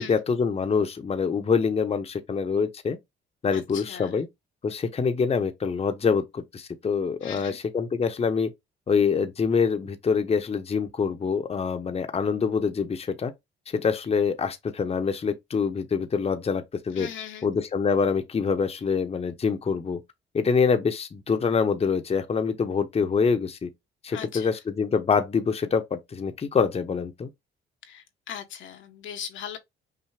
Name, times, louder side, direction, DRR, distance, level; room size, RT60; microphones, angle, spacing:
voice 1, 0.0-3.0 3.4-4.3 4.6-8.5 8.9-13.3 13.7-17.1 17.4-20.0 20.3-23.7 24.0-27.3, left 5 dB, 30° left, 0.7 m, -25 dB
voice 2, 3.5-4.2 7.2-7.6 17.0-17.5 24.1-24.5 27.8-29.6, left 8 dB, 75° left, 0.9 m, -39 dB
5.7 x 2.0 x 3.3 m
cardioid pair, 90°, 20 cm